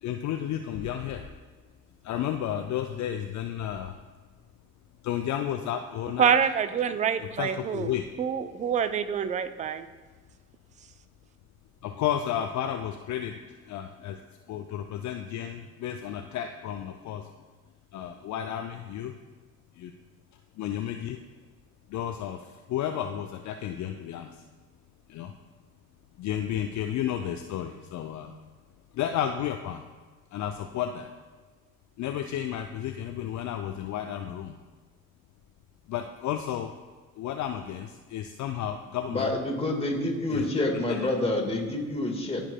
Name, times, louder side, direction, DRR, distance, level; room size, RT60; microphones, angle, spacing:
voice 1, 0.0-1.3 2.0-4.0 5.0-6.3 7.2-8.0 11.8-14.2 14.5-17.3 17.9-19.2 19.8-19.9 20.6-21.2 21.9-24.4 25.1-25.3 26.2-28.3 28.9-29.8 30.3-31.1 32.0-34.6 35.9-36.7 37.2-39.3 40.3-40.5 40.9-41.0, left 10 dB, 45° left, 5 dB, 0.5 m, -32 dB
voice 2, 6.2-9.9, right 7 dB, 20° right, 12 dB, 0.4 m, -26 dB
voice 3, 39.1-42.4, left 2 dB, 15° left, 1 dB, 1.6 m, -28 dB
13.5 x 4.6 x 2.2 m, 1.4 s
hypercardioid pair, 55°, 42 cm